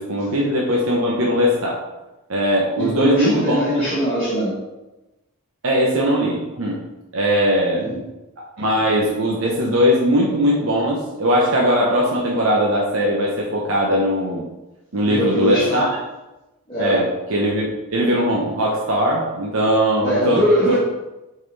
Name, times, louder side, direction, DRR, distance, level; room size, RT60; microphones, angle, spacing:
voice 1, 0.0-1.8 2.3-3.6 5.6-6.8 7.1-7.9 8.6-14.4 14.9-15.9 16.8-20.7, equal, 65° right, -3 dB, 0.9 m, -20 dB
voice 2, 2.8-4.5 7.7-8.0 8.6-8.7 15.1-15.9 16.7-17.0 20.0-20.8, equal, 25° left, -10 dB, 1.4 m, -21 dB
6.4 x 4.1 x 4.1 m, 1.0 s
head